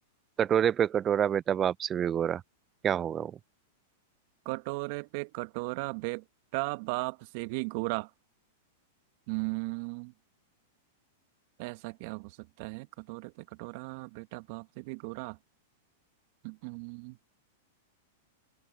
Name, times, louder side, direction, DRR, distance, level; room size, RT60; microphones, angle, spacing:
voice 1, 0.4-2.4 2.8-3.3, right 9 dB, 25° right, 0.5 m, -27 dB
voice 2, 4.4-6.2 6.5-8.1 9.3-10.1 11.6-12.3 12.6-13.3 13.6-15.4 16.4-17.2, right 27 dB, 55° right, 1.4 m, -36 dB
hypercardioid pair, 105°, 0 cm